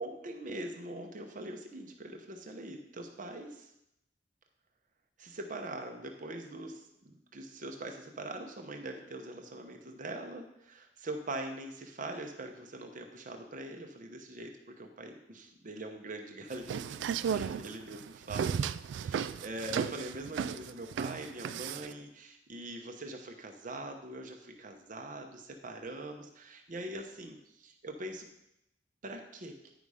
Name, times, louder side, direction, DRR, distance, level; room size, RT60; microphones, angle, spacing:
voice 1, 0.0-3.7 5.2-17.0 17.3-18.5 19.0-28.3 29.0-29.6, right 2 dB, 45° right, 4 dB, 0.8 m, -42 dB
sound 1, 16.5-21.9, right 7 dB, 80° right, 0.3 m, -34 dB
9.1 x 5.4 x 4.8 m, 0.82 s
head